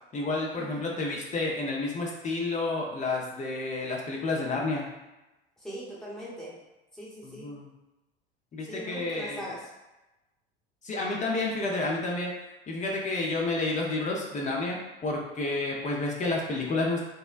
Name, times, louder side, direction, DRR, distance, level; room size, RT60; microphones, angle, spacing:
voice 1, 0.1-4.9 7.2-7.7 8.5-9.5 10.8-12.3 12.7-17.0, left 2 dB, 25° left, -2 dB, 0.6 m, -30 dB
voice 2, 5.6-6.6 6.9-7.5 8.7-9.7, equal, ahead, -7 dB, 0.9 m, -40 dB
3.4 x 2.1 x 2.4 m, 1.0 s
hypercardioid pair, 70°, 29 cm